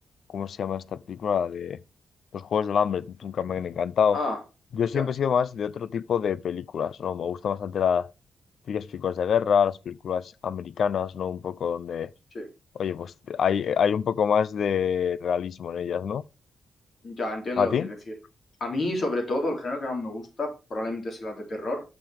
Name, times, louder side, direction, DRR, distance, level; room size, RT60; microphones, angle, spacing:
voice 1, 0.3-1.8 2.3-4.2 4.7-8.1 8.7-12.1 12.8-16.2 17.6-17.9, left 7 dB, 55° left, 0.4 m, -26 dB
voice 2, 17.0-17.9 18.6-21.8, left 2 dB, 40° left, 3.3 m, -30 dB
8.8 x 6.1 x 5.0 m
wide cardioid pair, 165°, 0 cm